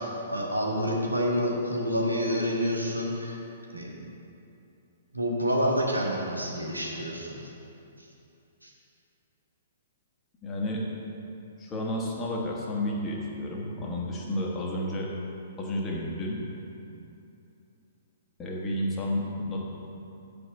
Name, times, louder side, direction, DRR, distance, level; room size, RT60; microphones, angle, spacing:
voice 1, 0.0-3.4 3.7-3.9 5.1-7.4 8.0-8.1 8.6-8.7, equal, 85° right, -2 dB, 1.5 m, -28 dB
voice 2, 10.4-10.8 11.6-15.1 15.6-16.4 18.4-19.6, left 1 dB, 20° left, -3 dB, 1.5 m, -31 dB
6.7 x 5.4 x 7.1 m, 2.8 s
figure-of-eight pair, 115°, 0 cm